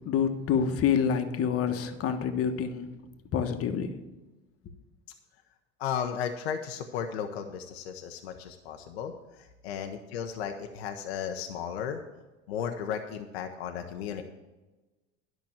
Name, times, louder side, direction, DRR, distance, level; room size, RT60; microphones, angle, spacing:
voice 1, 0.0-2.9 3.3-4.0, left 7 dB, 50° left, 7 dB, 1.3 m, -27 dB
voice 2, 5.8-12.0 12.5-14.2, left 8 dB, 85° left, 5 dB, 0.9 m, -35 dB
10.5 x 6.0 x 7.2 m, 1.1 s
hypercardioid pair, 80°, 31 cm